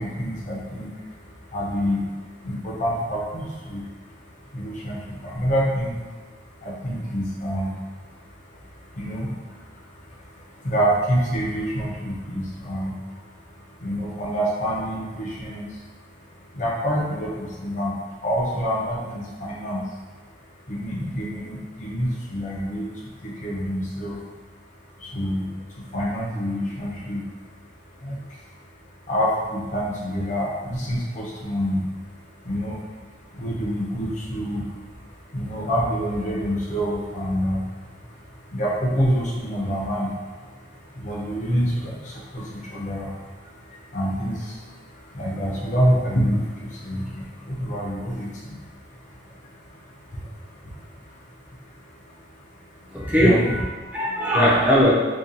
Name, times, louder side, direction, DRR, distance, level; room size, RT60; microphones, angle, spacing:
voice 1, 0.0-53.4 53.8-54.0, equal, 45° left, -4 dB, 0.6 m, -28 dB
voice 2, 52.9-53.6 53.9-54.9, equal, 10° right, -7 dB, 0.4 m, -19 dB
2.7 x 2.2 x 2.5 m, 1.4 s
head